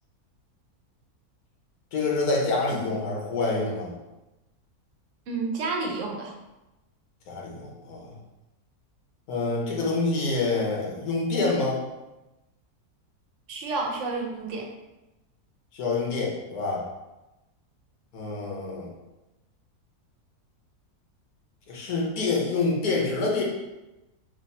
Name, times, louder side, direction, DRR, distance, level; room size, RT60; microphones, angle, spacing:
voice 1, 1.9-3.9 7.3-8.1 9.3-11.8 15.7-16.8 18.1-18.9 21.7-23.4, left 3 dB, 80° left, -2 dB, 1.4 m, -27 dB
voice 2, 5.3-6.3 13.5-14.7, right 3 dB, 60° right, 0 dB, 1.0 m, -30 dB
3.4 x 3.0 x 4.1 m, 1.0 s
omnidirectional pair, 1.6 m